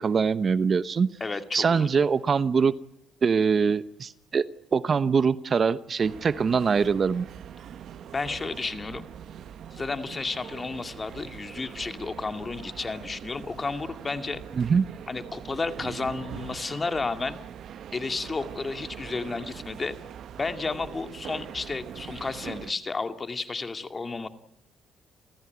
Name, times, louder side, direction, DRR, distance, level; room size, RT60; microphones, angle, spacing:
voice 1, 0.0-1.1 1.5-2.7 3.2-4.4 4.7-7.3 14.5-14.9, right 5 dB, 45° right, 15 dB, 0.9 m, -23 dB
voice 2, 1.2-1.9 8.1-9.1 9.7-14.4 15.1-17.4 17.9-20.0 20.4-24.3, left 3 dB, 30° left, 8 dB, 2.3 m, -32 dB
sound 1, 6.0-22.7, right 9 dB, 70° right, 0.9 m, -42 dB
30.0 x 14.5 x 9.4 m, 0.84 s
cardioid pair, 90°, 0 cm